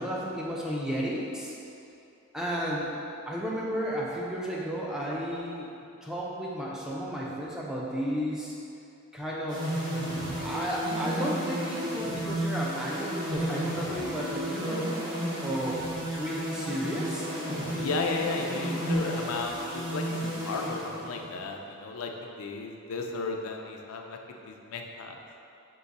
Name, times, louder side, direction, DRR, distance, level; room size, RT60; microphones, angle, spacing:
voice 1, 0.0-1.5 2.3-2.9 3.3-5.7 6.0-8.5 9.1-9.7 10.4-14.9 15.4-15.8 16.1-17.3, equal, 5° right, -5 dB, 0.4 m, -33 dB
sound 1, 9.5-21.4, equal, 20° right, 0.8 m, -32 dB
voice 2, 17.7-24.2 24.5-25.2, left 3 dB, 85° left, 2 dB, 0.4 m, -34 dB
3.8 x 2.6 x 4.0 m, 2.7 s
head